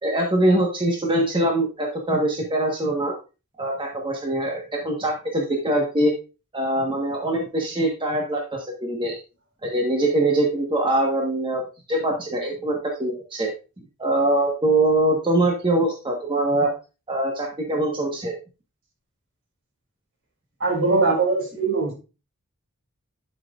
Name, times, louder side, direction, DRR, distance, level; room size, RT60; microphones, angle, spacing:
voice 1, 0.0-3.1 3.6-6.1 6.5-9.2 9.6-11.6 11.9-13.5 14.0-16.7 17.1-18.3, right 1 dB, 25° right, 0 dB, 1.3 m, -23 dB
voice 2, 20.6-21.9, right 3 dB, 60° right, 0 dB, 3.0 m, -21 dB
11.5 x 5.9 x 2.4 m, 0.31 s
head